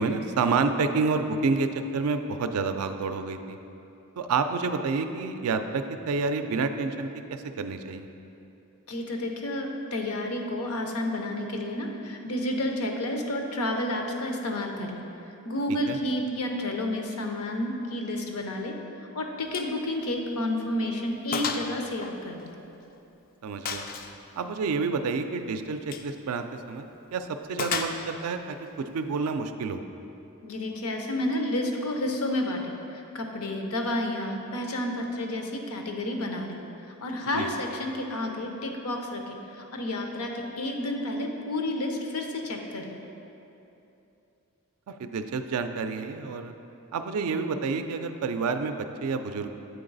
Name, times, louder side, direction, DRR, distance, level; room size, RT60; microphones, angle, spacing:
voice 1, 0.0-1.7 1.9-3.6 4.2-8.0 15.9-16.0 23.4-23.9 24.4-29.8 37.3-37.5 45.0-46.5 46.9-49.5, right 4 dB, 75° right, 8 dB, 0.4 m, -29 dB
voice 2, 8.9-15.0 15.4-18.7 19.1-22.5 30.4-36.6 37.0-39.2 39.7-43.0, left 1 dB, 75° left, 3 dB, 0.7 m, -30 dB
Gunshot gunfire, 19.5-19.7 20.1-20.2 20.7-20.8 21.3-21.7 22.0-23.0 23.7-24.2 25.8-26.1 27.6-28.3, left 6 dB, 40° left, 0.3 m, -33 dB
8.0 x 3.9 x 3.9 m, 2.8 s
head